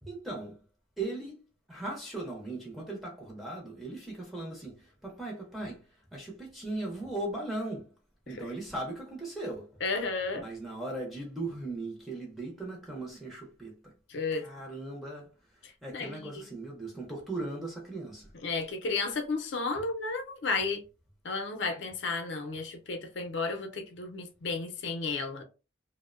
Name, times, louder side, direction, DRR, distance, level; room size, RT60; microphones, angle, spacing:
voice 1, 0.0-0.6 1.0-7.9 8.3-9.8 10.3-13.9 14.3-18.3 19.7-19.8, right 2 dB, ahead, 0.5 m, -38 dB
voice 2, 9.8-10.4 14.1-14.4 15.6-16.3 18.4-20.8 21.2-25.4, left 4 dB, 70° left, 0.5 m, -33 dB
2.6 x 2.0 x 2.4 m
head